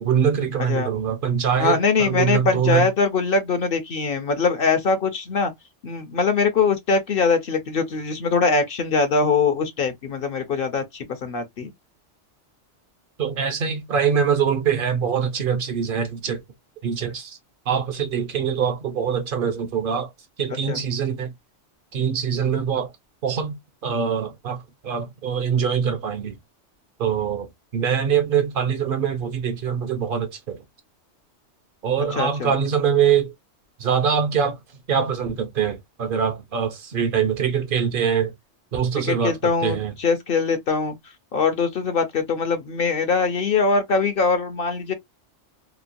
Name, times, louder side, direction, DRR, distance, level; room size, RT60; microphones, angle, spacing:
voice 1, 0.0-2.9 13.2-16.4 16.8-17.4 17.7-20.1 20.4-21.3 21.9-22.9 23.2-23.6 23.8-26.4 27.0-30.6 31.8-33.3 33.8-34.6 34.9-38.3 38.7-39.9, right 7 dB, 55° right, 0.7 m, -23 dB
voice 2, 1.6-5.5 5.8-11.7 20.7-20.8 32.1-32.5 39.1-41.0 41.3-44.9, left 4 dB, 55° left, 0.7 m, -22 dB
2.9 x 2.1 x 2.5 m
omnidirectional pair, 1.3 m